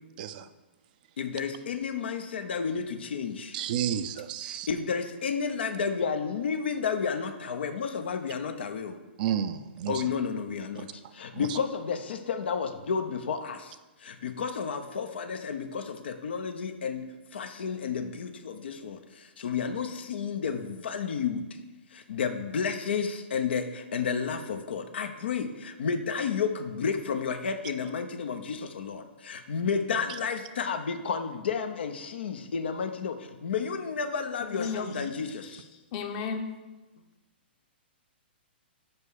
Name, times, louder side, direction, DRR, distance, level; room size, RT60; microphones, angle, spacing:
voice 1, 0.2-0.5 3.5-4.7 9.2-10.0 10.7-10.8 11.3-11.6, right 9 dB, 50° right, 12 dB, 0.4 m, -31 dB
voice 2, 1.2-3.6 4.5-9.0 9.9-17.1 17.3-21.5 21.9-35.6, left 6 dB, 70° left, 8 dB, 0.8 m, -31 dB
voice 3, 34.4-35.0 35.4-36.5, left 5 dB, 40° left, 6 dB, 1.0 m, -35 dB
5.6 x 5.2 x 6.3 m, 1.1 s
hypercardioid pair, 130°, 6 cm